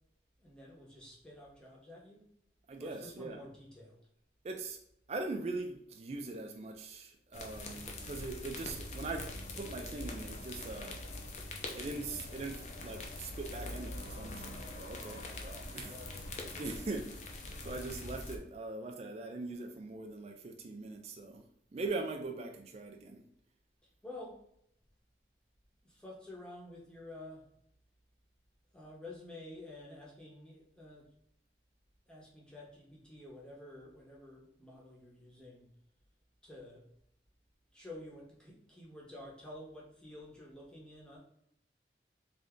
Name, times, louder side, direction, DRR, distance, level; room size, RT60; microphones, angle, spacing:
voice 1, 0.4-2.3 2.8-4.0 15.8-16.3 23.8-24.4 25.8-27.5 28.7-31.1 32.1-35.7 36.4-36.9 37.7-41.2, left 1 dB, 5° left, -4 dB, 0.8 m, -50 dB
voice 2, 2.7-3.4 4.4-4.8 5.1-9.3 9.6-11.0 11.7-15.9 16.6-17.2 17.6-21.4 21.7-23.2, right 3 dB, 35° right, 3 dB, 0.3 m, -41 dB
sound 1, 7.3-18.4, left 2 dB, 40° left, 0.5 m, -44 dB
3.4 x 2.6 x 3.5 m, 0.71 s
head